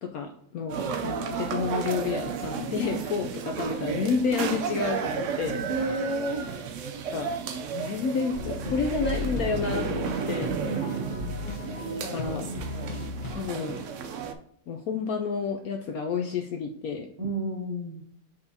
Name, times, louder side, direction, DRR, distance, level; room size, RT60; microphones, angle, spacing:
voice 1, 0.0-5.6 7.1-7.3 7.7-10.7 12.0-12.5 13.3-13.9 14.7-17.1, left 5 dB, 75° left, 4 dB, 0.8 m, -30 dB
sound 1, 0.7-14.3, right 6 dB, 90° right, 0.6 m, -33 dB
voice 2, 5.7-6.5 10.6-11.5 17.2-18.0, right 2 dB, 40° right, -2 dB, 0.6 m, -31 dB
sound 2, 8.3-13.3, left 2 dB, 40° left, 0.7 m, -35 dB
6.8 x 5.2 x 2.7 m, 0.70 s
omnidirectional pair, 1.9 m